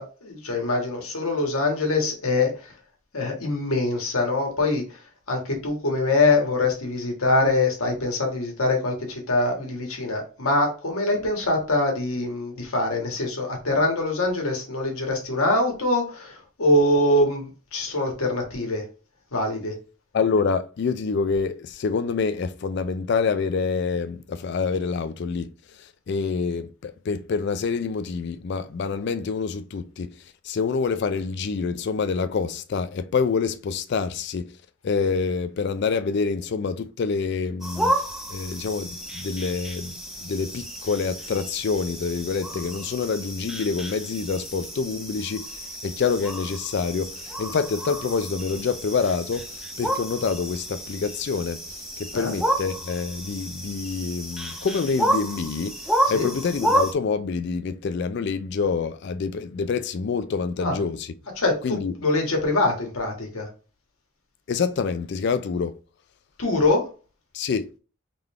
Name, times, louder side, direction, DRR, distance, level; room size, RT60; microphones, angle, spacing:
voice 1, 0.0-2.7 3.1-4.8 5.3-18.8 19.3-19.7 52.1-52.3 56.1-56.3 60.6-60.8 61.4-63.5 66.4-66.8, left 2 dB, 80° left, 1.6 m, -24 dB
voice 2, 20.1-25.5 25.8-30.1 30.4-34.5 34.8-37.9 38.3-40.0 40.2-45.5 45.8-55.8 56.1-61.1 61.6-61.9 64.5-65.8 67.3-67.7, left 5 dB, 50° left, 0.3 m, -26 dB
sound 1, 37.6-56.9, right 1 dB, ahead, 0.6 m, -31 dB
3.8 x 3.5 x 3.2 m
head